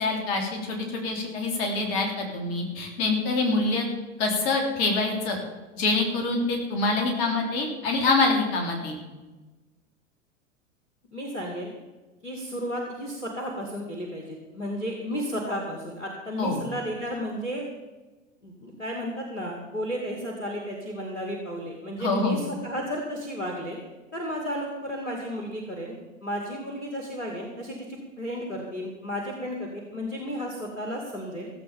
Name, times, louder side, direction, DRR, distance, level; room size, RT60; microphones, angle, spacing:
voice 1, 0.0-3.9 4.2-5.4 5.8-9.0 16.4-16.6 22.0-22.4, left 3 dB, 45° left, 1 dB, 3.5 m, -25 dB
voice 2, 11.1-11.7 12.2-17.6 18.4-23.8 24.1-26.0 26.2-31.5, equal, 85° left, 0 dB, 2.3 m, -33 dB
16.0 x 8.0 x 7.2 m, 1.2 s
figure-of-eight pair, 85°, 38 cm